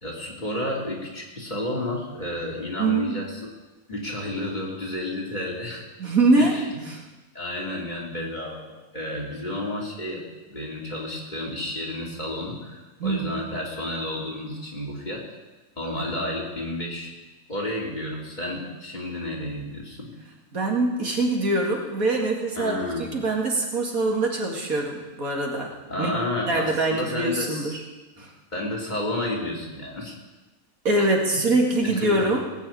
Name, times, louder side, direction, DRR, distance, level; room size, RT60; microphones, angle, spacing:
voice 1, 0.0-3.5 3.9-5.8 6.4-6.8 7.3-10.2 10.5-15.3 15.8-17.1 17.5-20.1 22.5-23.1 25.9-27.8 28.5-30.1 31.0-31.4 31.8-32.3, left 1 dB, 30° left, -3 dB, 3.2 m, -31 dB
voice 2, 2.8-3.2 6.0-7.0 13.0-13.4 16.0-16.1 20.5-25.7 26.0-26.1 26.5-27.8 28.2-28.3 30.8-32.4, right 2 dB, 75° right, 0 dB, 2.6 m, -24 dB
19.0 x 6.3 x 8.8 m, 1.1 s
omnidirectional pair, 1.5 m